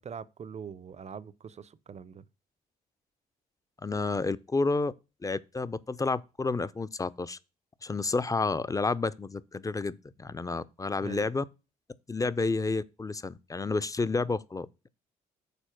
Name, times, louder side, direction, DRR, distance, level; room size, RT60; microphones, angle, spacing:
voice 1, 0.0-2.2 11.0-11.3, right 7 dB, 35° right, 0.7 m, -43 dB
voice 2, 3.8-4.9 5.2-7.4 7.8-11.4 12.1-14.9, left 3 dB, 20° left, 0.6 m, -30 dB
6.9 x 4.3 x 5.8 m
hypercardioid pair, 55°, 19 cm